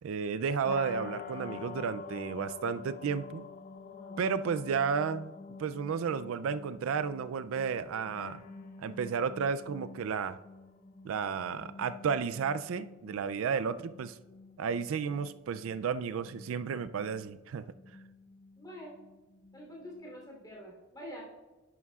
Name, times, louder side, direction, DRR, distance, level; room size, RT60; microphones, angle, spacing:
voice 1, 0.0-3.5 4.2-5.3 5.6-8.4 8.8-10.4 11.0-14.2 14.6-17.7, right 6 dB, 80° right, 13 dB, 0.4 m, -32 dB
sound 1, 0.6-20.5, left 4 dB, 45° left, 0.7 m, -48 dB
voice 2, 3.8-4.2 18.5-19.0 19.5-21.2, equal, 20° left, -3 dB, 3.2 m, -47 dB
11.0 x 11.0 x 2.4 m, 1.2 s
head